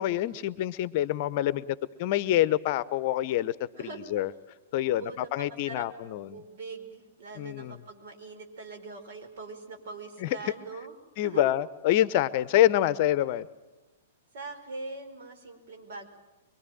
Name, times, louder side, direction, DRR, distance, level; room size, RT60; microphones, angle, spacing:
voice 1, 0.0-3.5 4.1-4.3 4.7-6.4 7.4-7.8 10.2-10.3 11.2-13.5, left 13 dB, 45° left, 17 dB, 0.9 m, -26 dB
voice 2, 3.8-4.1 4.8-11.0 11.2-11.5 14.3-16.1, right 3 dB, 55° right, 7 dB, 4.9 m, -42 dB
25.0 x 23.0 x 9.2 m, 1.1 s
figure-of-eight pair, 110°, 0 cm